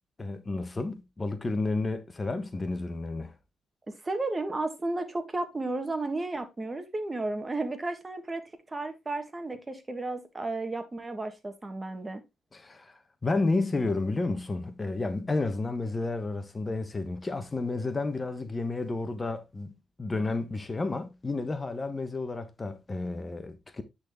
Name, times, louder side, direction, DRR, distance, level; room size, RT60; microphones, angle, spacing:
voice 1, 0.2-3.3 12.5-19.7 20.0-23.8, left 3 dB, 30° left, 1.1 m, -31 dB
voice 2, 3.9-8.4 8.7-12.2, right 2 dB, 25° right, 1.6 m, -33 dB
9.8 x 4.2 x 3.6 m
supercardioid pair, 60°, 0 cm